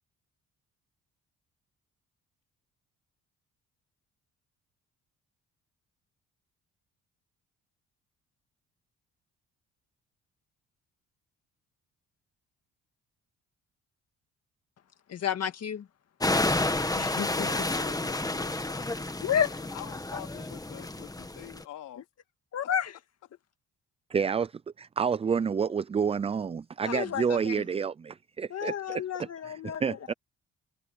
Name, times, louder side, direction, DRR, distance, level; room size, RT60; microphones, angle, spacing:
voice 1, 15.1-15.9 17.0-17.5 19.2-19.5 22.5-22.9 26.8-27.6 28.5-30.1, left 8 dB, 55° left, 1.9 m, -31 dB
sound 1, 16.2-21.6, left 2 dB, 10° left, 1.6 m, -30 dB
voice 2, 16.9-19.1 19.7-22.0, left 14 dB, 90° left, 2.6 m, -45 dB
voice 3, 24.1-29.0 29.4-30.1, right 6 dB, 20° right, 0.4 m, -29 dB
cardioid pair, 90°, 30 cm